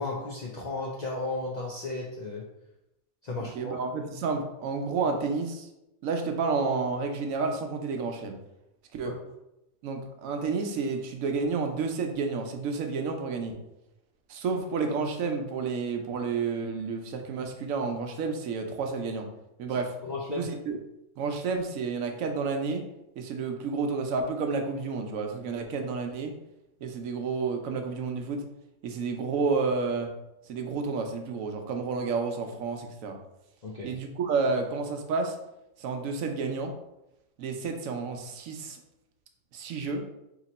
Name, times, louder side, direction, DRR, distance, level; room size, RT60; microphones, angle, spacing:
voice 1, 0.0-2.5 3.2-3.8 9.0-9.1 20.0-20.5 33.6-34.0, left 2 dB, 65° left, -3 dB, 0.4 m, -34 dB
voice 2, 3.4-5.7 6.0-8.4 8.9-9.1 9.8-13.6 14.3-19.3 19.6-20.0 20.3-20.8 21.2-22.9 23.2-26.3 26.8-28.4 28.8-30.1 30.5-33.2 33.8-35.4 35.8-36.7 37.4-38.8 39.5-40.0, right 4 dB, 80° right, 5 dB, 1.0 m, -30 dB
3.0 x 2.9 x 4.0 m, 0.89 s
omnidirectional pair, 1.4 m